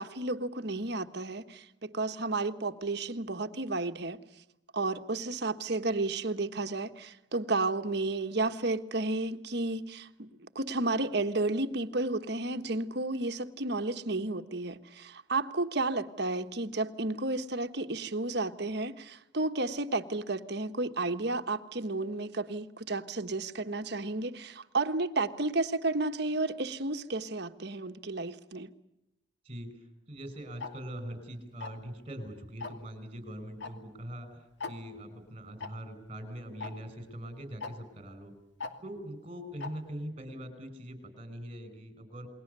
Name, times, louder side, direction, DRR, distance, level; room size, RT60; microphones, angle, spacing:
voice 1, 0.0-4.2 4.7-10.3 10.5-28.7, right 2 dB, 55° right, 8 dB, 1.4 m, -32 dB
voice 2, 29.4-38.3 38.8-42.3, equal, 30° right, 10 dB, 5.7 m, -42 dB
Tick-tock, 30.6-30.7 31.6-31.9 32.6-32.9 33.6-33.7 34.0-34.1 34.6-34.7 35.6-35.7 36.6-36.7 37.6-37.7 38.6-38.7 39.6-39.7, left 4 dB, 65° left, 2.7 m, -38 dB
29.5 x 22.0 x 6.8 m, 0.89 s
head